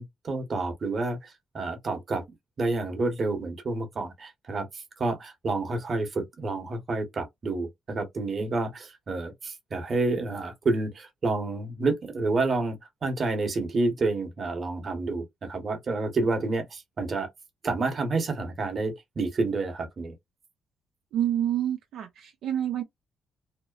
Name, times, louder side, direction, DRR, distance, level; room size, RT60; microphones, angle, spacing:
voice 1, 0.0-2.2 2.6-17.3 17.6-20.1, right 3 dB, 45° right, 1.0 m, -29 dB
voice 2, 21.1-22.8, right 11 dB, 80° right, 0.5 m, -28 dB
2.8 x 2.0 x 2.4 m
cardioid pair, 90°, 0 cm